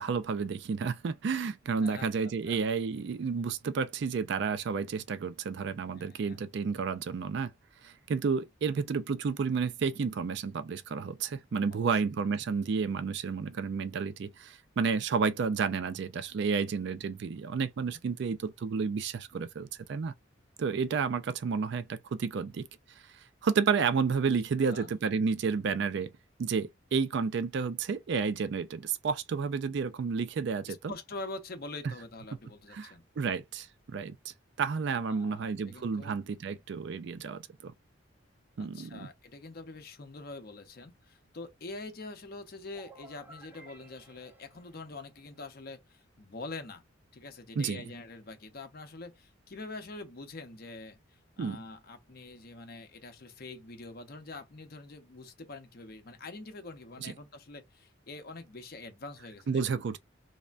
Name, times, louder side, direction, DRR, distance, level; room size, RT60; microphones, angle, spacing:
voice 1, 0.0-7.5 7.8-20.1 20.6-22.7 23.4-26.1 26.4-30.9 31.8-31.9 32.7-37.7 38.6-39.1 47.6-47.8 51.4-51.6 57.0-57.1 59.5-60.0, right 5 dB, 60° right, 0.3 m, -31 dB
voice 2, 1.8-2.6 5.9-6.4 8.7-8.9 11.7-12.0 24.6-24.9 30.7-33.0 35.0-36.2 38.6-46.8 47.1-51.0 51.4-59.6, left 3 dB, 50° left, 0.6 m, -45 dB
sound 1, 42.7-45.5, right 1 dB, 10° right, 0.6 m, -55 dB
3.2 x 2.1 x 2.4 m
head